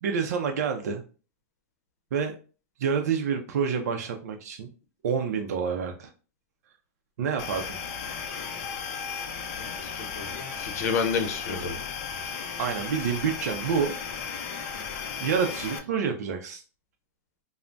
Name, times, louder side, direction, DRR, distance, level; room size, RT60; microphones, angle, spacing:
voice 1, 0.0-1.0 2.1-2.3 2.8-4.7 5.0-6.1 7.2-7.8 12.6-13.9 15.2-16.6, right 6 dB, 80° right, 4 dB, 0.4 m, -28 dB
sound 1, 7.4-15.8, left 6 dB, 40° left, 0.5 m, -35 dB
voice 2, 9.6-11.8, left 5 dB, 75° left, 6 dB, 0.7 m, -30 dB
3.3 x 2.0 x 2.5 m, 0.36 s
supercardioid pair, 165°, 9 cm